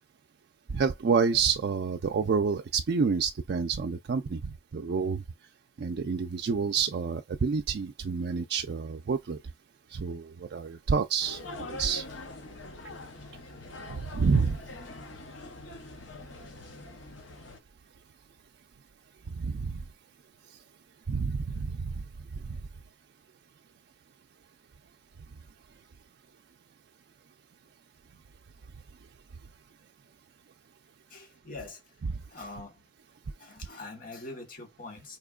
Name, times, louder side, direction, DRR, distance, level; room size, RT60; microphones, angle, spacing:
voice 1, 0.7-5.2 5.8-9.4 9.9-12.1 13.9-14.6 19.3-19.8 21.1-22.0 22.3-22.6, right 5 dB, 60° right, 0.4 m, -28 dB
sound 1, 11.2-17.6, left 2 dB, 80° left, 0.9 m, -43 dB
voice 2, 31.1-31.8 32.3-32.8 33.4-35.2, left 2 dB, 45° left, 1.2 m, -43 dB
4.3 x 3.0 x 2.3 m
head